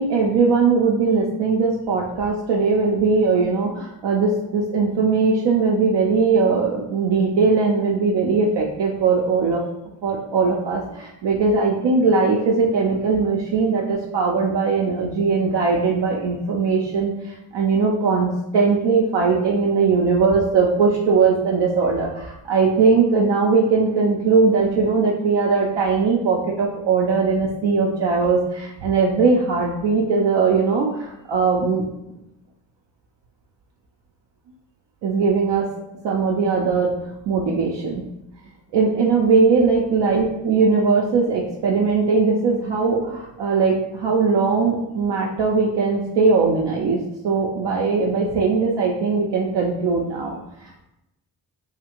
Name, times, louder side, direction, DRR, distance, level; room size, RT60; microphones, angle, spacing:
voice 1, 0.0-9.6 10.0-31.8 35.0-35.7 36.0-36.9 37.3-38.0 38.7-50.8, right 4 dB, 60° right, -2 dB, 0.6 m, -20 dB
2.7 x 2.4 x 2.9 m, 0.89 s
hypercardioid pair, 45°, 49 cm